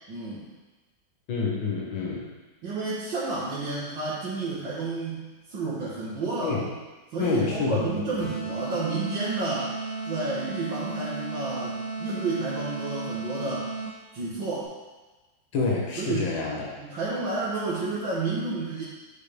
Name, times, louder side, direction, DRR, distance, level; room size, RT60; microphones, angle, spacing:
voice 1, 0.1-0.5 2.6-6.6 7.1-9.7 10.0-13.7 14.1-14.7 16.0-16.3 16.8-18.8, right 3 dB, 75° right, -9 dB, 2.1 m, -31 dB
voice 2, 1.3-2.3 6.4-6.7 7.2-7.8 15.5-16.7, left 4 dB, 75° left, -3 dB, 2.0 m, -27 dB
sound 1, 8.2-14.1, right 3 dB, 50° left, 2.8 m, -34 dB
9.2 x 5.2 x 3.4 m, 1.2 s
omnidirectional pair, 2.1 m